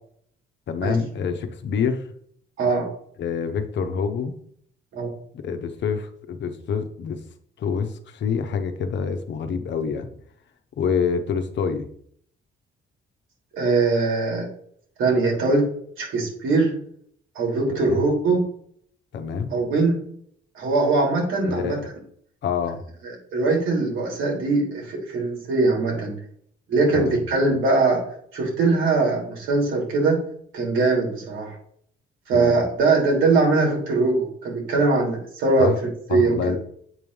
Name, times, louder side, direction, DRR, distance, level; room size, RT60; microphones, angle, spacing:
voice 1, 0.7-2.1 3.2-4.4 5.4-7.2 7.6-10.1 10.8-11.9 17.7-18.1 19.1-19.5 21.4-21.8 22.4-22.8 26.9-27.2 32.3-32.6 35.6-35.8 36.1-36.6, left 6 dB, 65° left, 7 dB, 1.0 m, -26 dB
voice 2, 13.5-14.5 15.0-15.6 16.0-16.7 17.3-18.4 19.5-20.0 20.5-21.8 23.3-26.1 26.7-28.0 28.3-30.2 30.5-31.6 32.3-35.7 36.1-36.6, right 3 dB, 85° right, -1 dB, 3.1 m, -21 dB
8.1 x 3.2 x 5.4 m, 0.63 s
cardioid pair, 90°, 20 cm